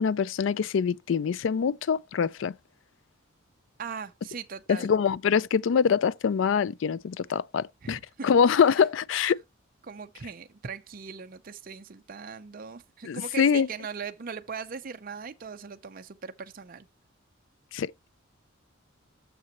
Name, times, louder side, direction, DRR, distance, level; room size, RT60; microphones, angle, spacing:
voice 1, 0.0-2.5 4.7-9.4 13.1-13.7 17.7-17.9, left 6 dB, 65° left, 0.4 m, -24 dB
voice 2, 3.8-4.9 7.3-7.4 7.8-8.3 9.8-16.9, right 6 dB, 45° right, 0.6 m, -40 dB
9.5 x 6.8 x 3.0 m
head